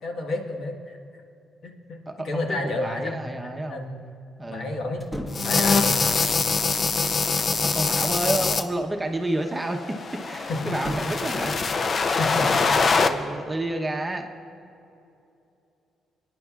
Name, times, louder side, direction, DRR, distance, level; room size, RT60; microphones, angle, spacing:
voice 1, 0.0-1.0 1.6-4.0 4.4-6.0 10.5-10.8 12.2-12.8, left 2 dB, 65° left, 1 dB, 1.4 m, -31 dB
voice 2, 2.1-3.8 4.4-4.7 7.5-11.6 12.3-14.3, right 1 dB, 15° right, 3 dB, 0.9 m, -30 dB
sound 1, 5.0-5.6 7.2-8.1 10.7-11.3, equal, 15° left, 1.3 m, -37 dB
sound 2, 5.3-8.6 9.7-13.1, left 4 dB, 45° left, 0.6 m, -23 dB
21.0 x 9.9 x 2.4 m, 2.7 s
cardioid pair, 90°, 0 cm